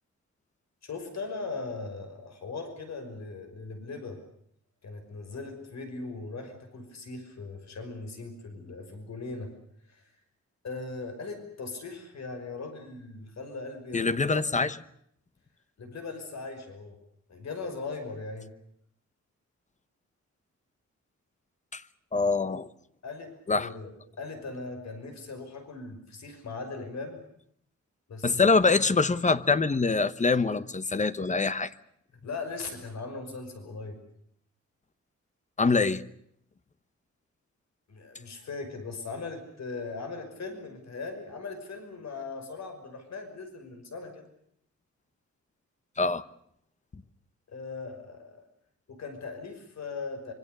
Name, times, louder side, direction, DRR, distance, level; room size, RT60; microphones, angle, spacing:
voice 1, 0.8-4.2 4.8-9.5 9.9-10.0 10.6-14.4 15.8-17.0 17.3-18.5 23.0-27.2 28.1-28.6 32.2-34.0 37.9-44.3 47.5-48.4 48.9-50.3, left 3 dB, 65° left, 5.7 m, -39 dB
voice 2, 13.9-14.8 21.7-21.8 22.1-22.7 23.5-23.7 28.2-31.7 35.6-36.0 46.0-46.2, left 4 dB, 25° left, 1.0 m, -24 dB
25.5 x 24.5 x 6.8 m
wide cardioid pair, 150°, 29 cm